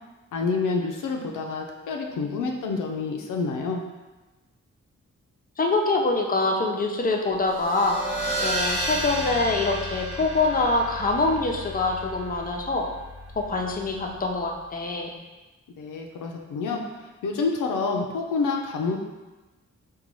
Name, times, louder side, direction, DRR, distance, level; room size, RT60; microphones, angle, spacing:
voice 1, 0.3-3.8 15.8-19.0, left 4 dB, 85° left, 2 dB, 0.5 m, -28 dB
voice 2, 5.6-12.9 13.4-15.1, left 3 dB, 30° left, 1 dB, 0.6 m, -25 dB
sound 1, 7.4-14.5, right 1 dB, 55° right, 0.9 m, -33 dB
3.8 x 2.3 x 3.0 m, 1.2 s
cardioid pair, 55°, 31 cm